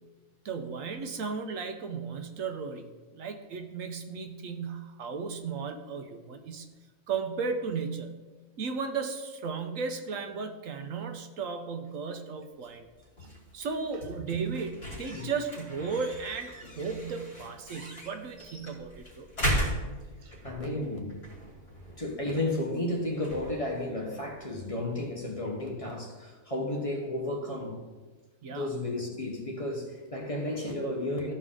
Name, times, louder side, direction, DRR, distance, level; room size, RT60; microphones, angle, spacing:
voice 1, 0.4-6.7 7.1-8.2 8.6-12.9 13.2-13.3 13.5-19.3 20.2-20.4 28.4-28.7, right 5 dB, 70° right, 6 dB, 1.1 m, -35 dB
sound 1, 12.5-25.3, equal, 45° left, 2.8 m, -38 dB
voice 2, 20.4-21.3 22.0-27.8 28.5-31.3, left 1 dB, 25° left, 0 dB, 1.0 m, -33 dB
14.0 x 4.7 x 3.7 m, 1.3 s
omnidirectional pair, 1.5 m